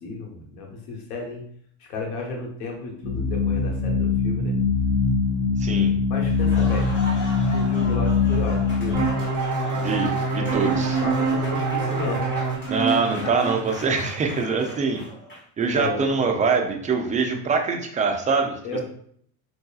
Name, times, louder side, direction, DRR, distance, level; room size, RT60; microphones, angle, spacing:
voice 1, 0.0-1.4 1.9-4.6 6.1-6.9 7.5-9.0 10.5-12.3 15.7-16.0 18.6-18.8, left 3 dB, 90° left, 1 dB, 1.1 m, -33 dB
sound 1, 3.0-9.0, left 4 dB, 60° left, 0.9 m, -22 dB
voice 2, 5.6-5.9 9.7-11.0 12.7-15.0 15.6-18.6, right 4 dB, 20° right, 3 dB, 0.3 m, -24 dB
Applause, 6.2-15.6, left 1 dB, 25° left, 1.4 m, -38 dB
sound 2, 8.9-14.3, right 4 dB, 60° right, 1.1 m, -26 dB
4.5 x 2.7 x 2.3 m, 0.62 s
supercardioid pair, 115°, 45 cm